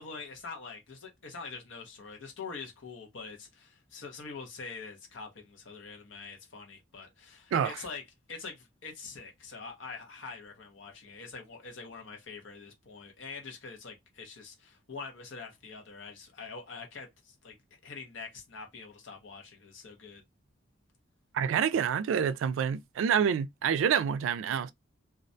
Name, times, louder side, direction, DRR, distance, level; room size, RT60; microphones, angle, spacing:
voice 1, 0.0-8.0 8.3-17.6 17.8-20.2, left 4 dB, 75° left, 0.7 m, -44 dB
voice 2, 21.3-24.7, right 7 dB, 85° right, 0.3 m, -27 dB
2.4 x 2.1 x 2.6 m
head